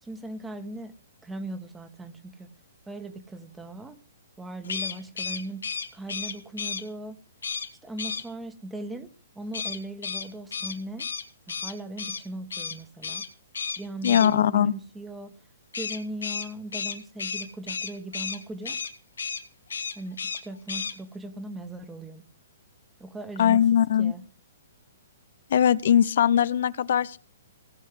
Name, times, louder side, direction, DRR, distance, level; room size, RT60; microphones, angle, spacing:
voice 1, 0.0-0.9 1.2-2.5 2.9-4.0 4.4-7.2 7.8-11.1 11.5-13.3 13.8-15.3 15.8-18.8 19.9-22.2 23.0-23.6 24.0-24.2, right 1 dB, 10° right, 10 dB, 1.5 m, -38 dB
sound 1, 4.6-6.8 7.4-7.7 8.0-8.2 9.5-12.2 12.5-12.8 13.0-13.3 13.5-14.3 15.7-18.4 18.6-18.9 19.2-19.4 19.7-20.4 20.7-20.9, left 5 dB, 85° left, 2.6 m, -32 dB
voice 2, 14.0-14.7 23.4-24.1 25.5-27.2, left 9 dB, 60° left, 16 dB, 0.6 m, -21 dB
17.5 x 6.4 x 7.8 m, 0.38 s
hypercardioid pair, 130°, 0 cm